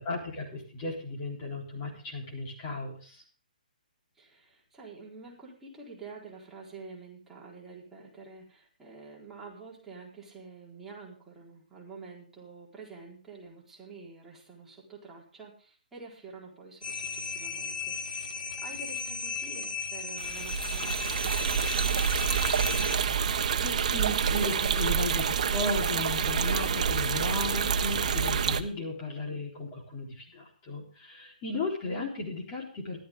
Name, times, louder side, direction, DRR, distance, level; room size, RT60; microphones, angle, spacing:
voice 1, 0.0-3.2 23.5-33.0, left 2 dB, 25° left, -1 dB, 3.8 m, -35 dB
voice 2, 4.1-18.3 18.6-22.2, right 4 dB, 5° right, -5 dB, 4.2 m, -48 dB
sound 1, 16.8-23.0, left 5 dB, 85° left, 1.9 m, -36 dB
sound 2, 20.2-28.6, right 7 dB, 50° right, 1.2 m, -27 dB
15.0 x 12.5 x 3.7 m, 0.42 s
hypercardioid pair, 150°, 5 cm